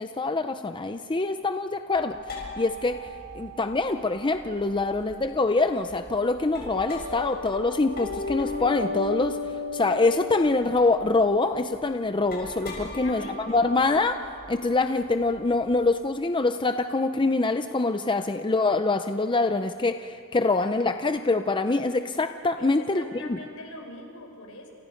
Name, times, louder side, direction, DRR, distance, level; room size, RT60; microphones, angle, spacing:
voice 1, 0.0-3.1 3.3-9.4 9.7-14.2 14.5-23.0 23.3-23.4, left 3 dB, 20° left, 8 dB, 0.6 m, -25 dB
sound 1, 1.9-15.8, left 3 dB, 45° left, 7.1 m, -37 dB
voice 2, 12.8-13.7 22.6-24.7, left 2 dB, 75° left, 2 dB, 5.0 m, -42 dB
29.5 x 28.0 x 5.2 m, 2.3 s
head